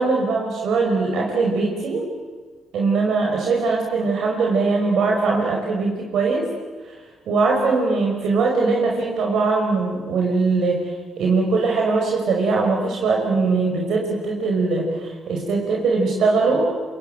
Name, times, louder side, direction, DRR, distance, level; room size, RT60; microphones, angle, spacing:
voice 1, 0.0-2.0 2.7-6.4 7.3-10.8 11.2-16.7, right 4 dB, 70° right, 0 dB, 5.4 m, -21 dB
26.5 x 22.5 x 9.2 m, 1.4 s
cardioid pair, 90°, 0 cm